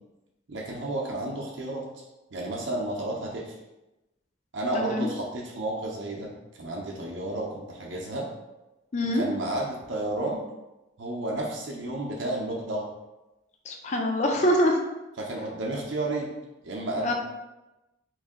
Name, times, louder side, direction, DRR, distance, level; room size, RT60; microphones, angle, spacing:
voice 1, 0.5-1.8 2.3-3.4 4.5-6.3 6.6-8.3 9.1-10.4 11.0-12.9 15.2-16.3 16.6-17.1, right 1 dB, 65° right, -2 dB, 0.6 m, -31 dB
voice 2, 4.7-5.1 8.9-9.2 13.7-14.8 17.0-17.1, equal, 35° left, 2 dB, 0.4 m, -24 dB
3.1 x 2.6 x 3.6 m, 1.0 s
head